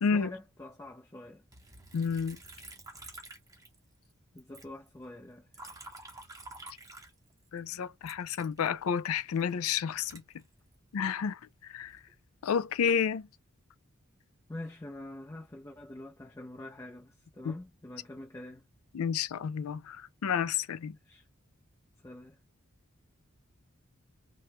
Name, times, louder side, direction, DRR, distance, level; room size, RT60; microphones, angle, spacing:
voice 1, 0.1-1.4 4.3-5.9 14.5-18.6 21.0-21.3 22.0-22.4, left 1 dB, 15° left, 0.5 m, -46 dB
Liquid, 1.5-4.1 4.4-7.6 8.0-11.0 11.6-12.1, right 2 dB, 15° right, 0.8 m, -50 dB
voice 2, 1.9-2.4 7.5-10.2 10.9-11.4 11.7-11.9 12.4-13.3 17.5-17.6 18.9-20.0 20.2-20.9, left 7 dB, 80° left, 0.4 m, -30 dB
3.0 x 2.1 x 3.0 m
head